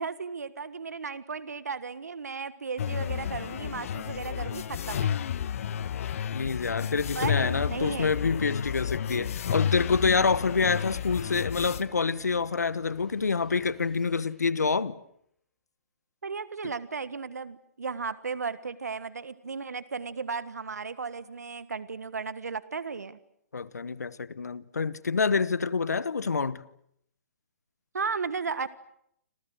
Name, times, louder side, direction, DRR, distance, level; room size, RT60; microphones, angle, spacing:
voice 1, 0.0-5.2 7.1-8.1 16.2-23.2 27.9-28.7, right 5 dB, 80° right, 1.5 m, -35 dB
sound 1, 2.8-11.8, left 9 dB, 60° left, 1.4 m, -32 dB
voice 2, 6.3-15.0 23.5-26.6, left 5 dB, 85° left, 1.2 m, -27 dB
sound 2, 11.7-14.9, left 1 dB, 5° left, 3.0 m, -57 dB
30.0 x 26.5 x 6.5 m
hypercardioid pair, 130°, 9 cm